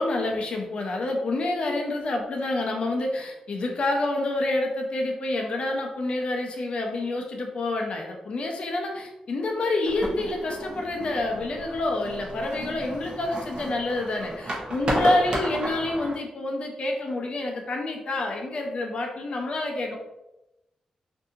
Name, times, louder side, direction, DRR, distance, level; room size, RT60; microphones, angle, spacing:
voice 1, 0.0-20.0, left 2 dB, 55° left, 1 dB, 0.5 m, -28 dB
sound 1, 9.9-16.1, right 1 dB, 45° right, 0.6 m, -33 dB
2.6 x 2.4 x 2.6 m, 0.95 s
wide cardioid pair, 115°, 2 cm